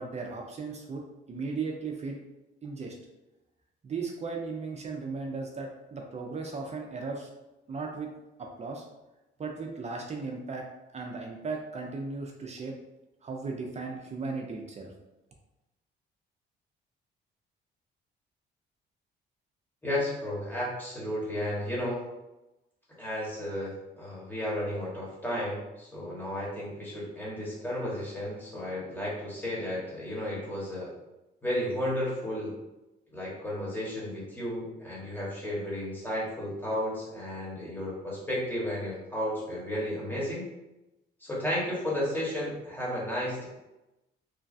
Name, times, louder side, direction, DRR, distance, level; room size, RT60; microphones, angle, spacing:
voice 1, 0.0-2.2 2.6-2.9 3.8-7.3 7.7-8.1 8.4-8.9 9.4-10.7 10.9-12.7 13.2-14.9, right 4 dB, 35° right, 1 dB, 0.4 m, -36 dB
voice 2, 19.8-22.0 23.0-30.9 31.4-32.5 33.1-40.4 41.2-43.5, left 1 dB, 10° left, -6 dB, 1.2 m, -33 dB
3.0 x 2.2 x 2.6 m, 0.99 s
cardioid pair, 90°, 20 cm